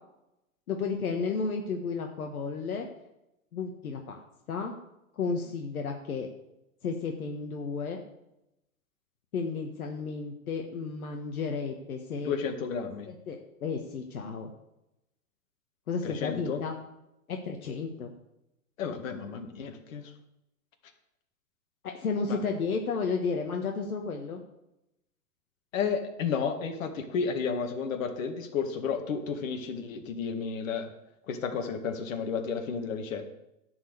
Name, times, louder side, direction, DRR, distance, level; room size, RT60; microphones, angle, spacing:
voice 1, 0.7-2.9 3.5-4.2 4.5-4.7 5.2-6.3 6.8-8.0 9.3-12.4 13.1-14.5 15.9-16.8 17.3-18.1 21.9-24.4, left 5 dB, 85° left, 3 dB, 1.5 m, -32 dB
voice 2, 12.2-13.1 16.0-16.6 18.8-20.0 22.3-22.4 25.7-30.9 31.3-33.3, left 6 dB, 65° left, 5 dB, 2.0 m, -32 dB
11.0 x 4.8 x 8.1 m, 0.87 s
hypercardioid pair, 125°, 43 cm